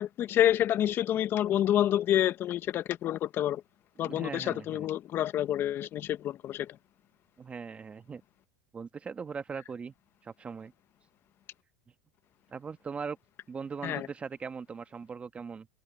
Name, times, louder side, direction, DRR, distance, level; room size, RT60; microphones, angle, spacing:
voice 1, 0.0-3.6 4.0-6.8 13.8-14.1, left 11 dB, 40° left, 0.9 m, -28 dB
voice 2, 4.0-4.9 7.4-8.2 8.7-9.9 10.2-10.7 12.5-13.2 13.5-15.7, right 5 dB, 20° right, 1.4 m, -40 dB
supercardioid pair, 115°, 6 cm